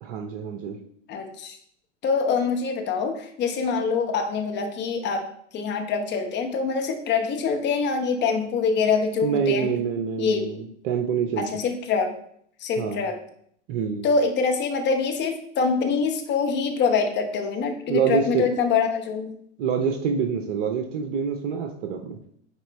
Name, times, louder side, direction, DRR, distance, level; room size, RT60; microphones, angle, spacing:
voice 1, 0.0-0.8 9.2-11.4 12.8-13.1 13.7-14.1 17.9-18.4 19.6-22.2, right 6 dB, 45° right, 4 dB, 0.8 m, -26 dB
voice 2, 1.1-1.6 2.0-5.3 5.5-9.7 10.2-10.5 11.4-12.1 12.6-13.2 14.0-19.3, left 5 dB, 30° left, 5 dB, 1.1 m, -25 dB
9.2 x 3.7 x 3.2 m, 0.66 s
figure-of-eight pair, 90°, 36 cm